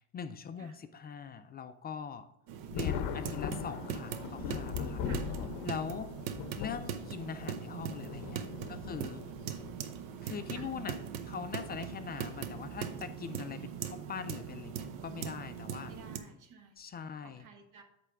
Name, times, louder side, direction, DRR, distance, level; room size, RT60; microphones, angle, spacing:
voice 1, 0.0-2.3 2.7-5.0 5.6-6.1 6.6-9.2 10.2-11.0 11.3-15.9 16.8-17.4, left 6 dB, 25° left, 10 dB, 0.3 m, -42 dB
sound 1, 2.5-16.2, right 8 dB, 70° right, 0.9 m, -41 dB
Thunder, 2.7-9.8 10.8-10.9 12.3-12.6 13.0-13.1 15.0-15.2 15.9-16.3, left 8 dB, 60° left, 0.8 m, -40 dB
voice 2, 5.0-5.3 8.6-9.0 10.5-10.7 15.8-16.8 17.2-17.8, right 4 dB, 45° right, 6 dB, 1.4 m, -54 dB
8.3 x 3.4 x 6.3 m, 0.78 s
supercardioid pair, 115°, 44 cm